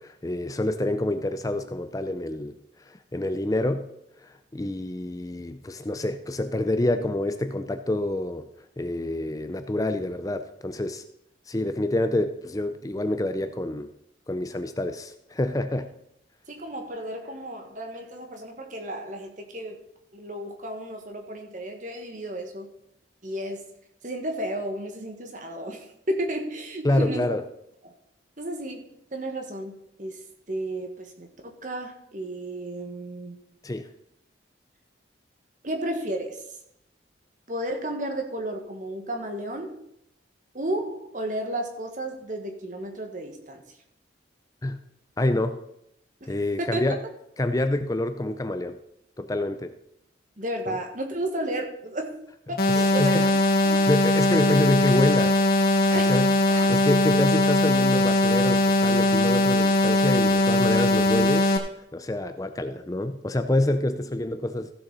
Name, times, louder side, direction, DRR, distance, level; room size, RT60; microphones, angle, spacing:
voice 1, 0.0-2.6 2.9-3.8 4.2-8.5 8.8-11.0 11.5-13.9 14.3-15.9 26.8-27.4 33.6-33.9 44.6-44.8 45.2-45.6 46.3-47.0 47.4-48.8 49.2-49.7 50.7-50.8 52.7-53.3 53.9-55.4 56.1-56.3 56.7-61.6 61.9-64.7, left 1 dB, 20° left, 9 dB, 0.5 m, -27 dB
voice 2, 16.5-19.8 20.1-22.7 23.2-23.6 24.0-27.3 27.8-27.9 28.4-28.8 29.1-30.2 30.5-33.4 35.6-36.4 37.5-39.8 40.5-43.6 46.2-46.8 50.4-52.2 52.5-53.3 53.6-53.9 54.4-54.6 55.9-56.1 56.5-56.8, right 1 dB, 45° right, 3 dB, 1.6 m, -33 dB
sound 1, 52.6-61.6, left 1 dB, 50° left, 1.6 m, -21 dB
15.0 x 6.9 x 4.1 m, 0.78 s
head